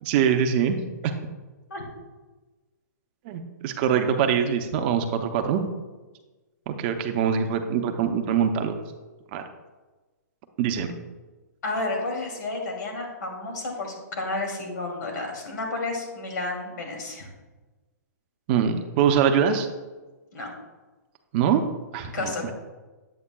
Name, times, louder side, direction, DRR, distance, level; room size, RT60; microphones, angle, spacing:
voice 1, 0.0-0.8 1.0-1.1 3.3-5.6 6.7-8.7 9.3-9.5 10.6-10.9 18.5-19.7 21.3-21.6 21.9-22.5, right 8 dB, 35° right, 6 dB, 0.6 m, -23 dB
voice 2, 11.6-17.3 20.3-20.5 22.1-22.5, left 2 dB, 75° left, 1 dB, 2.6 m, -31 dB
8.6 x 8.5 x 2.2 m, 1.2 s
hypercardioid pair, 155°, 10 cm